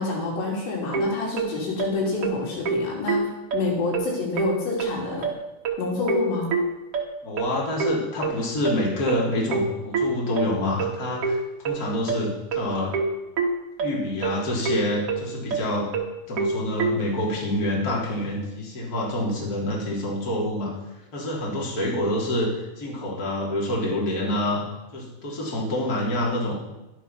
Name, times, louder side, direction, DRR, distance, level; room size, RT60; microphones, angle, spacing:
voice 1, 0.0-5.3 5.8-6.5, left 3 dB, 80° left, -2 dB, 5.3 m, -28 dB
sound 1, 0.9-17.0, right 4 dB, 55° right, 1.6 m, -26 dB
voice 2, 7.2-11.4 11.6-12.9 13.8-15.9 16.3-20.7 21.1-22.5 22.8-24.6 24.9-26.6, left 1 dB, 20° left, -3 dB, 3.3 m, -27 dB
12.5 x 11.0 x 5.9 m, 1.0 s
omnidirectional pair, 5.0 m